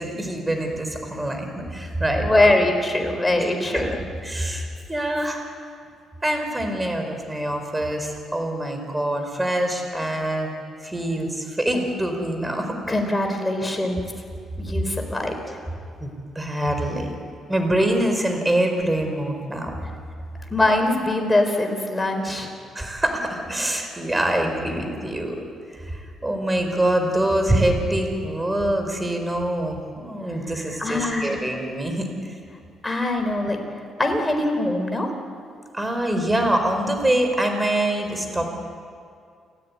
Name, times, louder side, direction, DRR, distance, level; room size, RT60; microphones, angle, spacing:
voice 1, 0.0-2.3 3.4-3.5 3.7-3.9 4.2-5.4 6.2-10.5 10.8-12.8 16.0-16.1 16.3-17.2 17.5-19.8 22.7-25.4 25.7-32.3 35.7-38.4, right 1 dB, 15° right, 5 dB, 4.8 m, -24 dB
voice 2, 2.2-4.0 12.9-14.0 14.6-15.6 20.5-22.5 30.8-31.4 32.8-33.6 34.0-35.1, left 1 dB, 15° left, 4 dB, 4.6 m, -22 dB
29.5 x 14.0 x 9.7 m, 2.3 s
cardioid pair, 90°, 0 cm